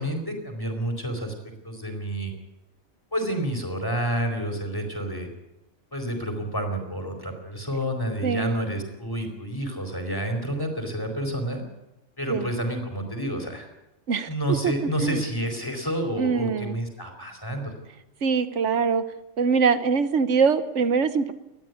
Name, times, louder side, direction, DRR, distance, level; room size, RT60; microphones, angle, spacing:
voice 1, 0.0-1.3 1.6-2.3 3.1-5.3 5.9-11.6 12.2-13.7 14.3-17.7, right 1 dB, 20° left, 4 dB, 4.4 m, -29 dB
voice 2, 8.2-8.7 12.3-12.5 14.1-14.7 15.0-15.2 16.2-16.8 18.2-19.0 19.4-21.3, right 5 dB, 80° right, 12 dB, 1.4 m, -23 dB
20.5 x 13.5 x 9.5 m, 0.92 s
omnidirectional pair, 1.2 m